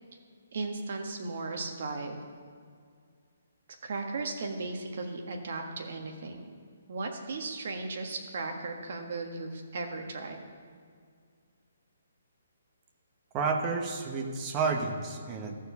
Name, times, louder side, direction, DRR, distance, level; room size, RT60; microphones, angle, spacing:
voice 1, 0.5-2.1 3.8-6.4 6.9-10.4, right 3 dB, 55° right, 3 dB, 1.5 m, -36 dB
voice 2, 13.3-15.6, right 4 dB, 20° right, 3 dB, 0.9 m, -30 dB
14.0 x 4.7 x 6.9 m, 2.2 s
hypercardioid pair, 165°, 0 cm